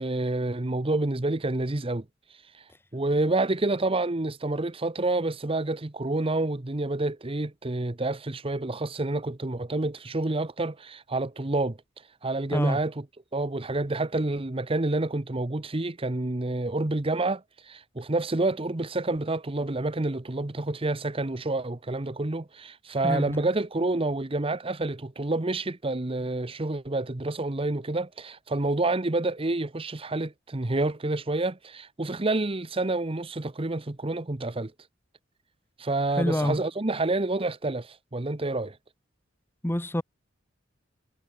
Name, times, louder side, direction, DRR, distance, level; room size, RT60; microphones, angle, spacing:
voice 1, 0.0-2.0 2.6-2.7 2.9-11.8 12.2-12.9 13.3-34.7 35.8-38.8, right 2 dB, 25° right, 0.9 m, -28 dB
voice 2, 23.0-23.4 36.2-36.6 39.6-40.0, left 1 dB, 10° left, 1.2 m, -26 dB
head